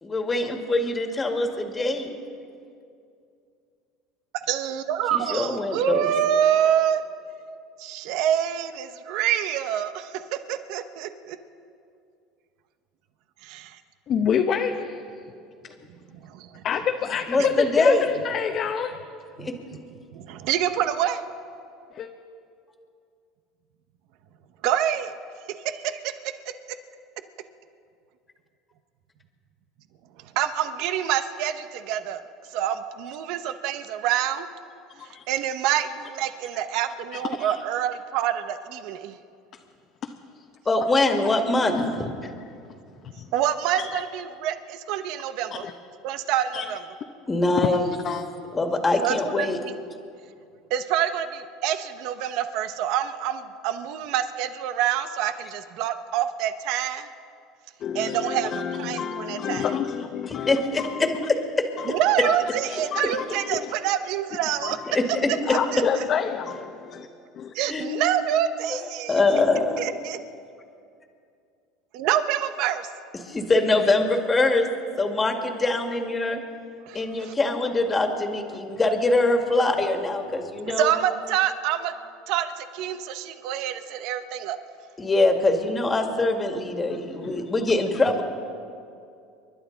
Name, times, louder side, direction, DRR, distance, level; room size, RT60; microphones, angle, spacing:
voice 1, 0.0-2.2 5.1-6.1 17.3-18.1 19.4-19.5 40.7-42.1 47.3-47.9 48.5-49.6 60.3-61.7 64.9-65.6 67.7-67.9 68.7-68.8 69.1-69.8 73.2-74.7 75.0-76.4 76.9-80.9 85.0-88.2, left 2 dB, 20° left, 3 dB, 1.9 m, -23 dB
voice 2, 4.5-7.0 7.8-11.4 13.4-13.8 16.2-16.6 19.4-19.5 20.1-21.2 24.6-25.2 25.6-26.3 30.3-32.2 32.5-34.5 35.3-39.2 43.3-45.6 46.0-46.8 49.0-49.7 50.7-57.1 57.9-59.8 61.9-64.8 65.5-65.8 67.5-69.2 69.8-70.2 71.9-72.9 76.8-77.3 80.8-81.9 82.3-84.6, right 10 dB, 65° right, 10 dB, 0.8 m, -26 dB
voice 3, 14.1-15.0 16.6-19.0 21.9-22.1 35.0-35.2 37.1-37.5 40.0-40.1 41.7-41.9 43.2-43.3 43.8-44.0 45.6-45.7 46.5-46.7 48.0-48.2 57.8-60.6 61.8-61.9 62.2-62.4 62.8-63.2 63.5-63.7 64.6-64.8 65.5-67.1 67.4-67.5 87.2-87.4, left 7 dB, 45° left, 4 dB, 0.8 m, -28 dB
30.0 x 12.0 x 4.0 m, 2.4 s
supercardioid pair, 115°, 0 cm